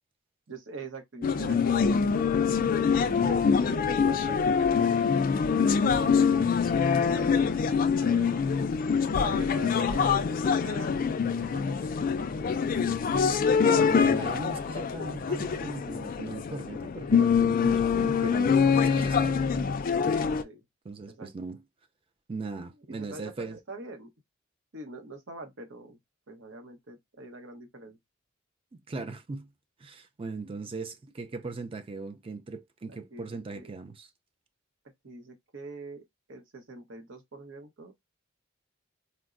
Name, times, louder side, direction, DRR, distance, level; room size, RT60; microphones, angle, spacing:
voice 1, 0.5-2.3 2.9-5.3 5.9-6.5 7.1-7.6 8.0-8.4 8.9-10.4 10.6-10.9 11.2-12.5 20.4-20.6 21.1-21.3 22.9-24.1 24.7-26.0 26.3-28.0 33.1-33.3 33.5-33.7 35.0-36.0 36.3-37.9, right 2 dB, 70° right, 0.9 m, -44 dB
sound 1, 1.2-20.4, left 6 dB, 45° left, 0.3 m, -25 dB
voice 2, 13.6-19.7 20.8-21.6 22.3-23.6 28.9-29.5 29.8-34.1, right 3 dB, 25° right, 0.4 m, -38 dB
4.3 x 2.0 x 2.4 m
head